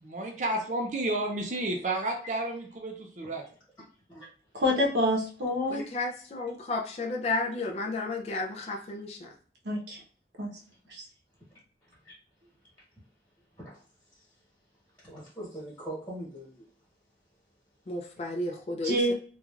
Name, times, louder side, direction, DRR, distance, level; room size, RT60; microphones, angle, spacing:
voice 1, 0.0-3.4, right 2 dB, 45° right, 1 dB, 0.5 m, -31 dB
voice 2, 4.5-5.8 9.6-10.0 10.4-10.5 10.9-11.0 18.8-19.1, left 1 dB, 75° right, -1 dB, 0.9 m, -27 dB
voice 3, 5.7-9.3 17.9-19.1, left 2 dB, 35° left, 1 dB, 0.4 m, -32 dB
voice 4, 15.0-16.6, right 1 dB, 10° left, -7 dB, 1.2 m, -41 dB
3.1 x 2.4 x 2.3 m, 0.44 s
head